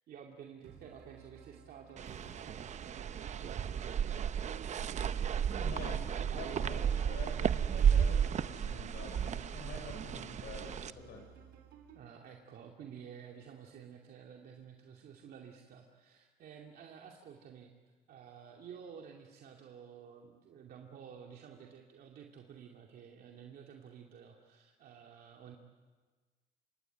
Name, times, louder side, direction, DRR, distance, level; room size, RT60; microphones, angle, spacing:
voice 1, 0.1-4.6 6.3-7.0 9.7-10.4 11.9-17.7 18.1-25.6, right 7 dB, 60° right, 1 dB, 2.6 m, -52 dB
sound 1, 0.6-12.1, right 7 dB, 80° right, 3.5 m, -56 dB
sound 2, 2.0-10.9, right 8 dB, 45° right, 0.8 m, -33 dB
voice 2, 5.6-11.2, left 4 dB, 70° left, 2 dB, 6.9 m, -47 dB
27.0 x 23.0 x 8.9 m, 1.4 s
cardioid pair, 110°, 17 cm